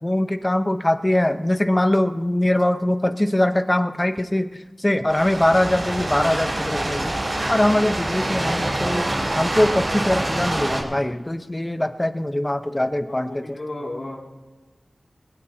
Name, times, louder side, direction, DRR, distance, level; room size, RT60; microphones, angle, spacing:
voice 1, 0.0-7.2 7.5-13.6, left 1 dB, 20° left, 9 dB, 0.9 m, -22 dB
sound 1, 5.1-10.8, right 1 dB, 45° right, 4.0 m, -25 dB
voice 2, 12.8-14.2, left 1 dB, 55° left, -4 dB, 2.5 m, -34 dB
21.5 x 18.0 x 2.8 m, 1.2 s
wide cardioid pair, 65°, 0 cm